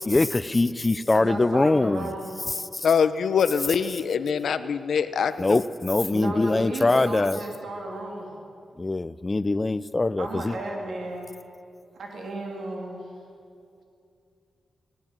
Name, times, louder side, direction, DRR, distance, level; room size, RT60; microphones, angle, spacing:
voice 1, 0.1-2.1 5.4-7.4 8.8-10.5, left 2 dB, 20° left, 15 dB, 0.4 m, -23 dB
voice 2, 1.1-2.4 6.1-8.3 10.2-11.3 11.9-13.1, right 2 dB, 65° right, 0 dB, 2.8 m, -34 dB
voice 3, 2.8-5.6, left 6 dB, 70° left, 12 dB, 0.8 m, -24 dB
19.5 x 18.0 x 7.4 m, 2.5 s
wide cardioid pair, 150°, 0 cm